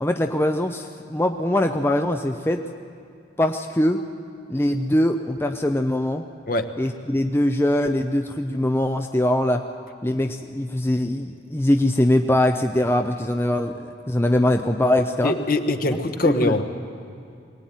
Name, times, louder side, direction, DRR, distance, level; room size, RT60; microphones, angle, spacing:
voice 1, 0.0-2.7 3.4-4.0 4.5-6.3 6.8-9.7 10.0-15.3 15.9-16.0 16.2-16.5, left 1 dB, 15° left, 5 dB, 0.6 m, -22 dB
voice 2, 15.2-16.8, left 2 dB, 50° left, 7 dB, 1.3 m, -23 dB
22.0 x 18.5 x 9.2 m, 2.4 s
head